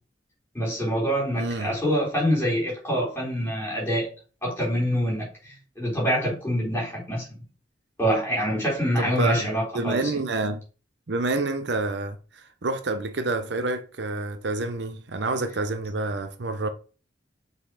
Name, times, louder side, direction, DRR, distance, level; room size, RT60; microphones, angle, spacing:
voice 1, 0.5-4.1 4.4-5.3 5.8-7.3 8.0-10.0, equal, 15° left, 3.8 m, -25 dB
voice 2, 1.4-1.7 9.0-10.7 11.1-16.7, right 2 dB, 65° right, 0.7 m, -28 dB
6.4 x 4.1 x 4.8 m
head